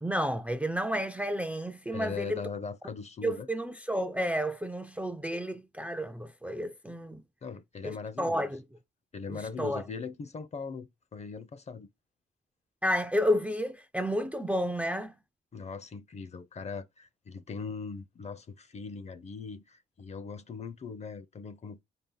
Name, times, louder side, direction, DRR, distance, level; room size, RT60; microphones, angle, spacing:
voice 1, 0.0-2.4 3.2-7.2 7.8-8.6 9.3-9.8 12.8-15.1, equal, 5° right, 0.4 m, -31 dB
voice 2, 1.9-3.5 7.4-8.5 9.1-11.9 15.5-21.8, left 5 dB, 35° left, 0.6 m, -40 dB
4.5 x 2.8 x 3.8 m
cardioid pair, 90°, 20 cm